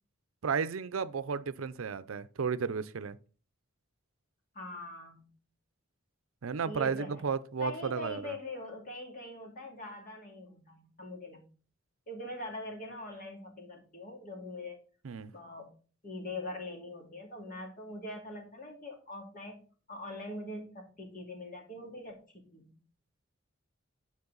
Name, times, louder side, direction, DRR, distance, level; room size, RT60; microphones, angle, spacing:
voice 1, 0.4-3.2 6.4-8.3 15.0-15.3, right 6 dB, 85° right, 0.5 m, -33 dB
voice 2, 4.5-5.3 6.6-7.3 7.6-11.4 12.1-14.8 15.3-15.7 16.0-19.6 19.9-22.8, left 1 dB, 40° left, 2.3 m, -43 dB
9.6 x 4.6 x 3.9 m
head